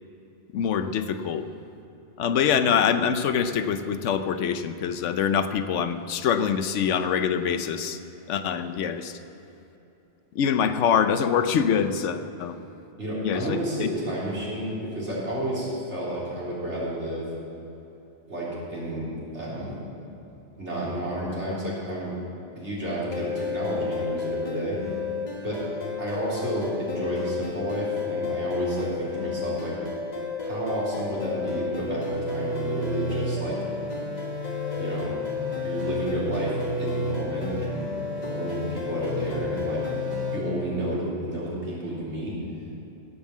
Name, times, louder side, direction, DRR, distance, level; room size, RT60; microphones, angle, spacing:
voice 1, 0.5-1.5 2.2-8.0 8.3-9.2 10.3-12.6 13.2-13.9, left 7 dB, 90° left, 10 dB, 1.0 m, -24 dB
voice 2, 13.0-17.3 18.3-19.8 20.6-22.1 22.6-24.8 25.4-25.6 26.0-29.8 30.4-33.6 34.8-35.1 35.6-37.8 38.2-39.8 40.3-42.4, right 1 dB, 75° right, -7 dB, 3.8 m, -31 dB
sound 1, 23.1-40.4, left 3 dB, 35° left, 1.8 m, -31 dB
16.5 x 5.6 x 7.3 m, 2.9 s
omnidirectional pair, 1.2 m